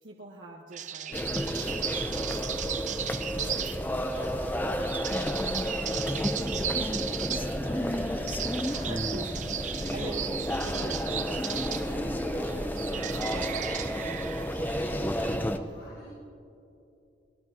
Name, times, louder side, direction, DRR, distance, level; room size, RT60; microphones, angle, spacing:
voice 1, 0.0-2.6 3.0-8.5 8.9-15.5 15.8-15.9, right 2 dB, 90° right, -3 dB, 1.4 m, -46 dB
sound 1, 0.7-15.4, right 9 dB, 40° right, 0.5 m, -36 dB
sound 2, 1.1-15.6, equal, 10° left, 0.5 m, -31 dB
voice 2, 8.3-9.0 15.4-16.1, left 1 dB, 40° left, -6 dB, 4.0 m, -50 dB
24.5 x 19.0 x 2.8 m, 2.7 s
head